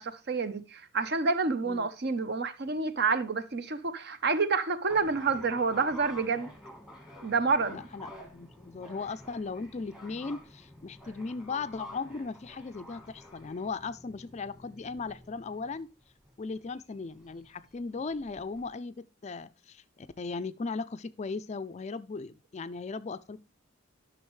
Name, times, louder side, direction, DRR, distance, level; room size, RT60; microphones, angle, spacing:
voice 1, 0.0-6.5 7.2-7.8, right 4 dB, 50° right, 0.8 m, -28 dB
sound 1, 4.9-18.7, left 1 dB, 5° right, 1.3 m, -50 dB
voice 2, 7.7-15.9 16.4-23.4, left 4 dB, 35° left, 0.4 m, -37 dB
11.0 x 6.3 x 3.1 m
head